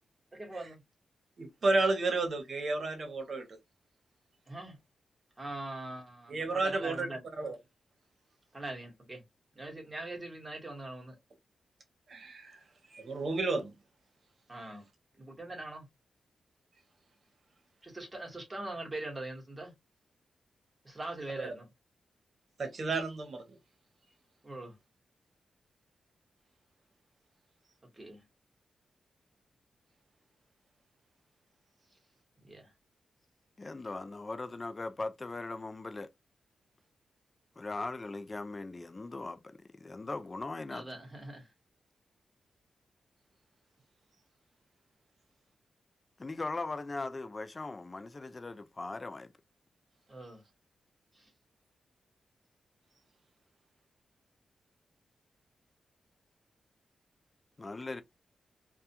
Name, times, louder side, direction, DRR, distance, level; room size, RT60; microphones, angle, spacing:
voice 1, 0.3-0.8 4.5-4.8 5.4-7.2 8.5-9.2 9.5-11.2 14.5-14.8 15.2-15.9 17.8-19.7 20.8-21.7 24.4-24.8 27.9-28.2 32.4-32.7 40.7-41.5 50.1-50.4 51.1-51.3, right 2 dB, 20° right, 1.1 m, -42 dB
voice 2, 1.4-3.6 6.3-7.1 7.4-7.6 12.1-12.6 12.9-13.7 21.4-21.5 22.6-23.6, right 3 dB, 55° right, 0.9 m, -32 dB
voice 3, 33.6-36.1 37.6-40.9 46.2-49.3 57.6-58.0, left 3 dB, 30° left, 0.3 m, -39 dB
2.3 x 2.2 x 2.7 m
wide cardioid pair, 105°, 0 cm